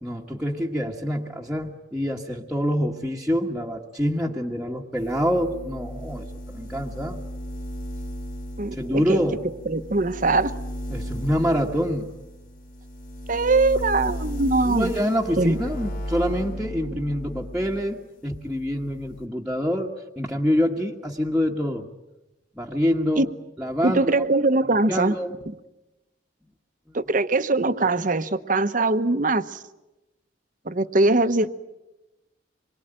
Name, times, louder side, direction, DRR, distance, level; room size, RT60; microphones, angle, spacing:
voice 1, 0.0-7.2 8.7-9.4 10.9-12.1 14.6-21.9 22.5-23.3 23.6-24.2 24.9-25.4 26.9-27.0, equal, 5° right, -3 dB, 1.5 m, -26 dB
sound 1, 5.0-17.9 18.2-19.3, equal, 50° left, 3.6 m, -35 dB
voice 2, 8.6-9.2 9.7-10.5 13.3-14.9 15.4-15.6 23.2-23.3 23.8-25.2 26.9-29.6 30.6-31.5, right 2 dB, 45° right, 11 dB, 1.1 m, -22 dB
26.5 x 23.0 x 9.0 m, 0.98 s
head